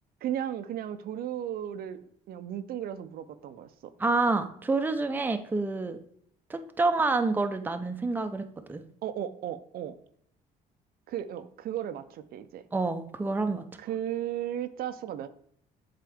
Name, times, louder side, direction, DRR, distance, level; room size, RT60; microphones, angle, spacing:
voice 1, 0.2-2.0 2.3-3.9 9.0-9.9 11.1-12.6 13.8-15.3, right 10 dB, 65° right, 11 dB, 0.5 m, -35 dB
voice 2, 4.0-6.0 6.5-8.8 12.7-13.6, right 3 dB, 10° right, 7 dB, 0.5 m, -28 dB
7.7 x 3.7 x 3.5 m, 0.66 s
cardioid pair, 110°, 17 cm